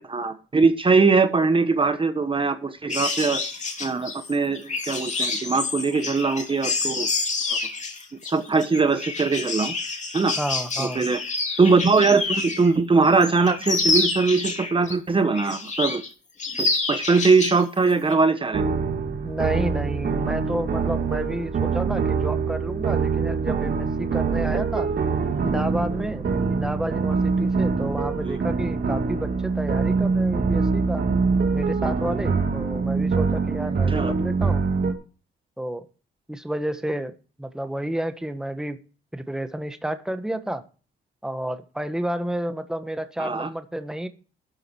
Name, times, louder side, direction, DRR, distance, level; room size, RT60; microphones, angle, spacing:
voice 1, 0.0-3.4 3.8-7.1 7.5-7.6 8.3-9.7 10.1-10.3 10.8-11.2 11.6-16.0 16.6-18.6 28.2-28.4 33.9-34.1 43.2-43.5, right 4 dB, 25° right, 9 dB, 1.1 m, -21 dB
sound 1, 2.9-12.7 13.0-14.9 15.3-16.1 16.4-17.6 17.9-18.1, left 3 dB, 35° left, 2.8 m, -28 dB
voice 2, 10.3-11.1 19.2-24.9 25.4-31.0 31.5-34.6 35.6-35.9 36.3-37.1 37.4-38.8 39.1-40.6 41.2-44.1, right 1 dB, 5° right, 9 dB, 1.3 m, -30 dB
sound 2, 18.5-34.9, right 4 dB, 50° right, 2.3 m, -24 dB
13.0 x 7.7 x 4.5 m, 0.36 s
cardioid pair, 90°, 20 cm